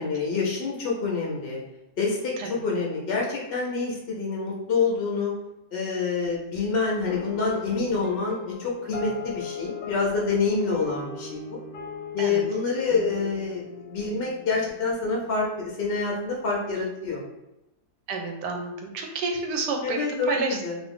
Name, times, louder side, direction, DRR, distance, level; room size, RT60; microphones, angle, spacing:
voice 1, 0.0-1.6 2.0-5.3 5.7-11.6 12.1-17.2 19.8-20.8, left 4 dB, 70° left, -3 dB, 0.5 m, -27 dB
sound 1, 7.0-15.6, left 6 dB, 85° left, 1.2 m, -39 dB
voice 2, 18.1-20.0 20.3-20.6, right 4 dB, 85° right, 3 dB, 1.2 m, -29 dB
2.8 x 2.6 x 3.5 m, 0.92 s
omnidirectional pair, 1.8 m